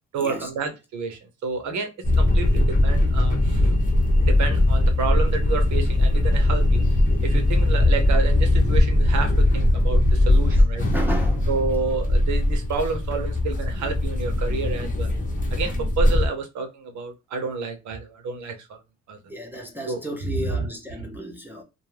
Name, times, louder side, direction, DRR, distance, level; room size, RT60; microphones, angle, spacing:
voice 1, 0.1-1.9 2.2-3.8 4.2-6.8 7.2-10.8 11.5-15.1 15.5-18.8 19.1-19.2 19.9-20.0 20.3-20.7 21.0-21.1, right 4 dB, 70° right, 0.7 m, -29 dB
sound 1, 2.0-16.3, left 1 dB, 25° left, 0.7 m, -20 dB
voice 2, 10.8-11.7 19.3-21.6, equal, 5° right, 0.6 m, -33 dB
2.3 x 2.1 x 3.2 m
cardioid pair, 90°, 30 cm